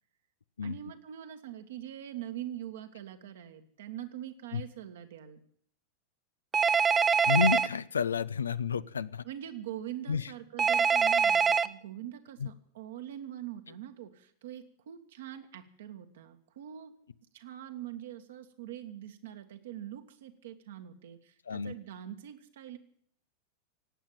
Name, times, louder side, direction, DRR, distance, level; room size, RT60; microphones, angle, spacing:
voice 1, 0.6-5.4 9.2-16.9 17.3-22.8, right 11 dB, 60° right, 7 dB, 1.7 m, -43 dB
Telephone, 6.5-7.7 10.6-11.7, right 6 dB, 20° right, 0.6 m, -24 dB
voice 2, 7.3-9.2 10.1-10.3 12.4-12.5 21.5-21.8, left 6 dB, 70° left, 17 dB, 0.6 m, -30 dB
18.0 x 8.9 x 9.0 m, 0.63 s
figure-of-eight pair, 90°, 0 cm